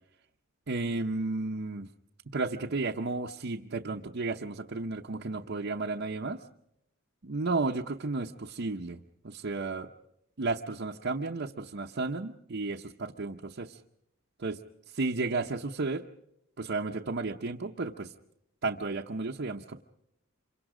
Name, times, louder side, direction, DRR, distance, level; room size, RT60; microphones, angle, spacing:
voice 1, 0.7-1.9 2.3-6.4 7.2-9.9 10.4-13.8 14.4-14.6 14.9-16.0 16.6-18.1 18.6-19.8, right 3 dB, 55° right, 0 dB, 0.8 m, -33 dB
27.5 x 24.0 x 5.0 m, 0.78 s
head